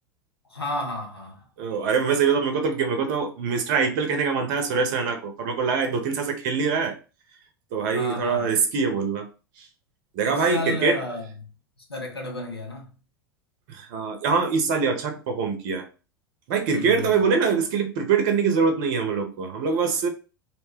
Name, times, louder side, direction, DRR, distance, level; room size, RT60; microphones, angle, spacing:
voice 1, 0.5-1.5 7.9-8.5 10.2-11.5 11.9-12.9 16.7-17.3, left 2 dB, 90° left, 0.7 m, -32 dB
voice 2, 1.6-6.9 7.7-9.3 10.1-11.0 13.7-15.9 16.5-20.1, right 5 dB, 50° right, 0.7 m, -24 dB
2.7 x 2.1 x 3.3 m
figure-of-eight pair, 85°, 13 cm